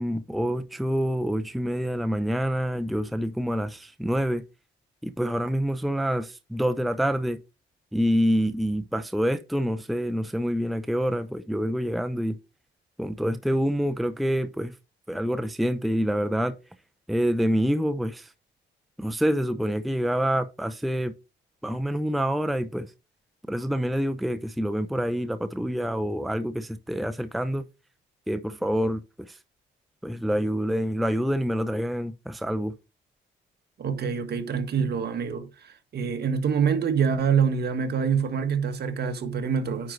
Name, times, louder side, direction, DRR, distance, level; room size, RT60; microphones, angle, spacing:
voice 1, 0.0-4.4 5.0-7.4 7.9-12.4 13.0-14.7 15.1-16.6 17.1-18.3 19.0-21.1 21.6-22.9 23.5-27.7 28.3-29.0 29.3-29.4 30.0-32.7, equal, ahead, 0.6 m, -26 dB
voice 2, 33.8-39.9, right 6 dB, 55° right, 1.7 m, -26 dB
9.6 x 4.6 x 3.9 m
cardioid pair, 90°, 20 cm